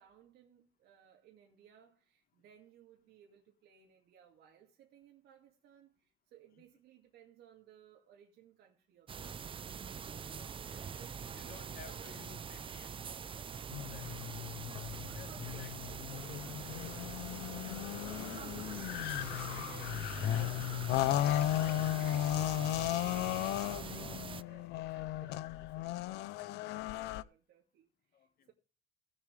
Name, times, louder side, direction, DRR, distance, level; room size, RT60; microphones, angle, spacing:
voice 1, 0.0-9.6 10.7-12.2 14.9-17.2 19.2-20.0 20.2-28.5, right 10 dB, 75° right, 2.3 m, -60 dB
sound 1, 9.1-24.4, right 7 dB, 30° right, 0.6 m, -44 dB
voice 2, 10.3-13.0 13.3-14.2 15.1-15.8 17.6-21.1 28.1-28.5, left 8 dB, 60° left, 2.2 m, -57 dB
sound 2, 13.7-27.2, left 13 dB, 85° left, 0.6 m, -35 dB
18.5 x 7.2 x 3.3 m
cardioid pair, 110°, 17 cm